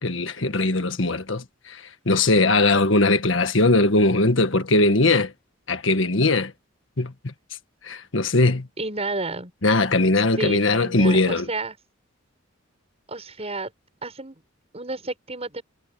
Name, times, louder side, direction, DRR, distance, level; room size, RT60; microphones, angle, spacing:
voice 1, 0.0-5.3 5.7-6.5 7.0-7.3 7.8-8.7 9.6-11.5, left 2 dB, 70° left, 1.6 m, -20 dB
voice 2, 8.8-9.5 10.4-11.7 13.1-13.7 14.0-14.4 14.7-15.6, right 2 dB, 30° right, 6.7 m, -31 dB
head